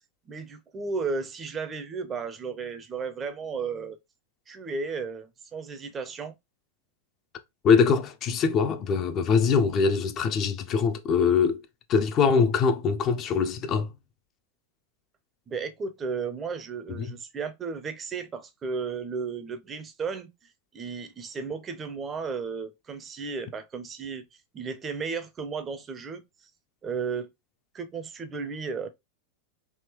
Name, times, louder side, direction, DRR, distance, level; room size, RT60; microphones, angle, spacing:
voice 1, 0.3-4.0 4.5-6.3 15.5-20.3 20.7-24.3 24.5-26.2 26.8-27.3 27.7-28.9, right 5 dB, 20° right, 0.5 m, -34 dB
voice 2, 7.6-11.6 11.9-13.9, left 5 dB, 35° left, 0.5 m, -23 dB
3.4 x 2.8 x 3.0 m
figure-of-eight pair, 90°, 0 cm